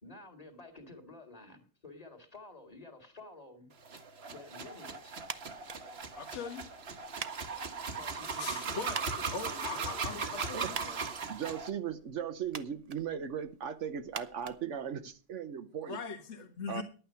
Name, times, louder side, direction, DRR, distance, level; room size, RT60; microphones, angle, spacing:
voice 1, 0.0-3.7 4.3-5.3 7.9-11.1 12.7-12.8, left 3 dB, 30° left, 5 dB, 2.4 m, -51 dB
sound 1, 3.8-11.7, right 5 dB, 60° right, 1.5 m, -38 dB
sound 2, 5.2-15.4, right 6 dB, 40° right, 0.7 m, -48 dB
voice 2, 6.1-6.6 8.7-9.0 9.3-11.0 15.9-16.8, left 5 dB, 65° left, 5 dB, 1.7 m, -40 dB
sound 3, 6.3-6.9 8.2-9.1, left 10 dB, 85° left, 1.1 m, -48 dB
voice 3, 11.3-16.0 16.7-16.8, right 8 dB, 80° right, 10 dB, 1.2 m, -37 dB
11.0 x 9.0 x 5.7 m, 0.37 s
omnidirectional pair, 1.2 m